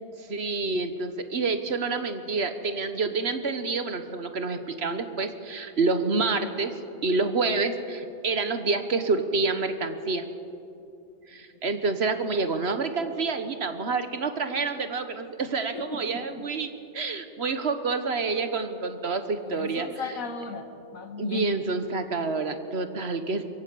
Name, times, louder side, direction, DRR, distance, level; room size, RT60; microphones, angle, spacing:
voice 1, 0.3-6.7 7.0-10.2 11.3-19.9 21.2-23.4, right 4 dB, 50° right, 9 dB, 1.4 m, -28 dB
voice 2, 15.7-16.4 19.4-21.6, left 4 dB, 85° left, 7 dB, 2.0 m, -36 dB
22.5 x 15.5 x 8.4 m, 2.6 s
omnidirectional pair, 1.4 m